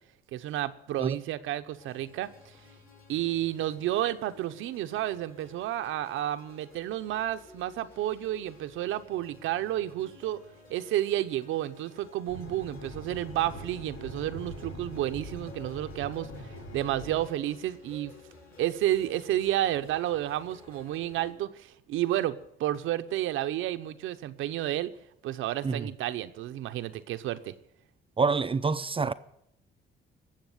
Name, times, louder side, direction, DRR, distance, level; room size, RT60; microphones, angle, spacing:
voice 1, 0.3-2.5 3.1-10.4 10.7-18.1 18.6-24.9 25.2-27.5, right 13 dB, 90° right, 0.8 m, -31 dB
sound 1, 1.8-21.3, left 4 dB, 45° left, 6.4 m, -54 dB
sound 2, 12.3-17.2, equal, 75° left, 3.4 m, -42 dB
voice 2, 28.2-29.1, right 4 dB, 25° right, 0.5 m, -27 dB
19.0 x 7.4 x 9.3 m
cardioid pair, 90°, 20 cm